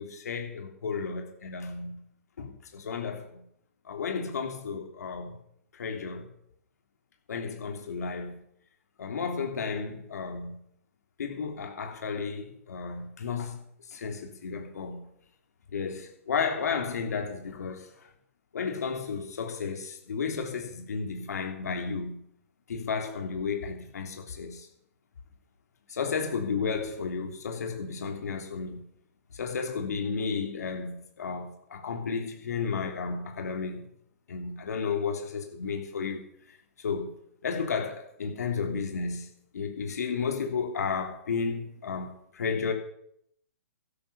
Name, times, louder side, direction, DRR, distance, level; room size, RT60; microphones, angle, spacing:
voice 1, 0.0-2.0 2.4-3.4 3.8-5.4 5.7-6.3 7.3-8.4 9.0-10.6 11.2-13.6 13.9-15.1 15.7-18.1 18.5-22.3 22.7-24.7 25.9-28.8 29.3-33.8 34.3-36.2 36.8-37.2 37.4-39.3 39.5-42.7, left 5 dB, 75° left, 3.1 m, -33 dB
12.5 x 11.5 x 6.9 m
hypercardioid pair, 145°, 9 cm